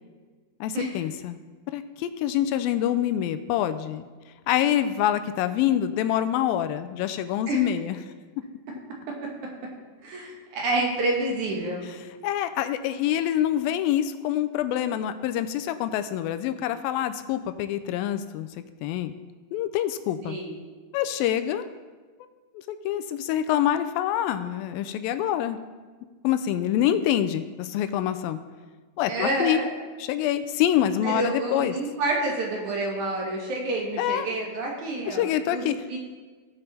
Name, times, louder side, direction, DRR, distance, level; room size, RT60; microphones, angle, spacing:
voice 1, 0.6-1.4 1.7-4.1 4.5-8.0 12.2-18.5 18.8-19.1 19.5-20.4 20.9-21.7 22.7-25.6 26.2-28.4 29.0-29.6 30.0-31.7 34.0-34.3 35.1-35.8, left 11 dB, 85° left, 10 dB, 2.3 m, -26 dB
voice 2, 10.0-11.9 20.2-20.5 29.1-29.7 31.0-35.6 35.9-36.0, right 2 dB, 60° right, -1 dB, 2.6 m, -28 dB
16.0 x 5.4 x 4.1 m, 1.4 s
omnidirectional pair, 4.2 m